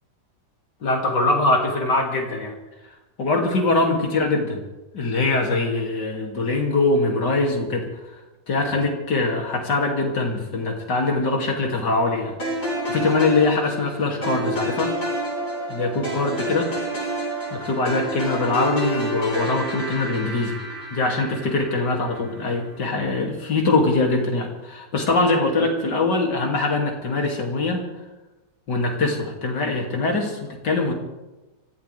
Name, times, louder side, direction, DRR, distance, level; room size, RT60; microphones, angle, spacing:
voice 1, 0.8-2.5 3.2-4.6 4.9-7.9 8.5-12.3 12.9-14.9 15.7-16.7 17.5-20.6 20.9-27.8 28.7-30.9, left 3 dB, 65° left, 1 dB, 3.4 m, -22 dB
sound 1, 12.4-22.7, right 1 dB, 45° left, 5.3 m, -29 dB
25.5 x 15.5 x 3.5 m, 1.1 s
omnidirectional pair, 2.0 m